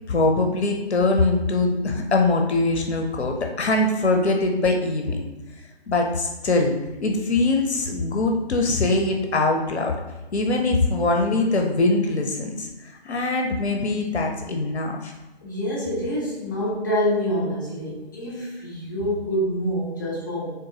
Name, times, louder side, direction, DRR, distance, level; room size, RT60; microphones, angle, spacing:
voice 1, 0.1-5.2 5.9-6.7 7.0-9.9 10.3-15.1, left 2 dB, 80° left, 2 dB, 0.7 m, -22 dB
voice 2, 15.4-20.6, equal, 20° left, -7 dB, 0.6 m, -26 dB
3.9 x 3.6 x 2.7 m, 1.1 s
figure-of-eight pair, 155°, 33 cm